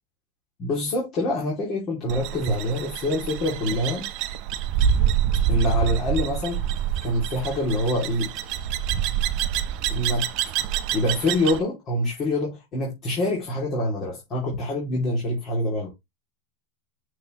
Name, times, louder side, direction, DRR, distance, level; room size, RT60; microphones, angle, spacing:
voice 1, 0.6-4.1 5.5-6.6 7.0-8.3 9.9-10.3 10.9-15.9, left 1 dB, 35° left, 2.8 m, -25 dB
sound 1, 2.1-11.6, right 9 dB, 50° right, 0.7 m, -26 dB
6.4 x 4.7 x 3.1 m
supercardioid pair, 125°, 0 cm